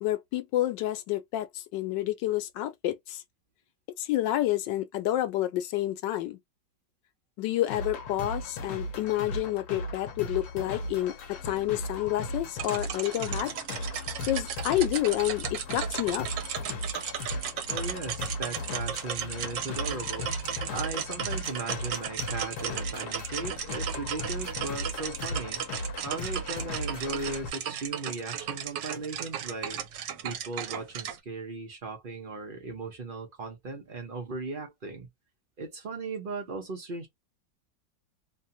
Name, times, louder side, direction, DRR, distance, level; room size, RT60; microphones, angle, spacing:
voice 1, 0.0-3.2 4.0-6.4 7.4-13.5 14.3-16.3, left 14 dB, 90° left, 1.3 m, -29 dB
sound 1, 7.7-27.5, left 2 dB, 65° left, 1.3 m, -37 dB
sound 2, 12.6-31.2, right 9 dB, 85° right, 1.4 m, -35 dB
voice 2, 17.7-20.3 20.6-25.6 26.0-29.8 30.2-35.1 35.6-37.1, right 3 dB, 45° right, 0.7 m, -37 dB
3.2 x 2.2 x 2.7 m
omnidirectional pair, 1.9 m